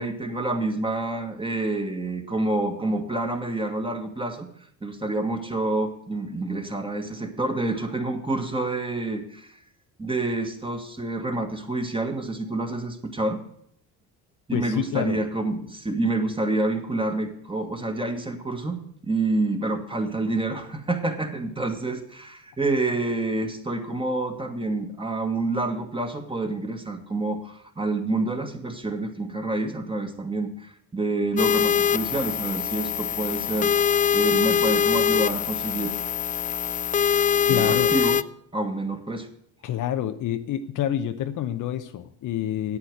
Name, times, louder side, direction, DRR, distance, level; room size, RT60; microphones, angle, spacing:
voice 1, 0.0-4.5 4.8-9.6 10.0-13.4 14.5-33.7 34.1-35.9 37.5-38.2 38.5-39.3, right 2 dB, 15° right, 5 dB, 1.9 m, -28 dB
voice 2, 14.5-15.2 37.4-37.9 39.6-42.8, left 11 dB, 55° left, 9 dB, 0.9 m, -28 dB
sound 1, 31.4-38.2, left 8 dB, 25° left, 0.3 m, -23 dB
8.7 x 8.4 x 7.9 m, 0.68 s
supercardioid pair, 75°, 37 cm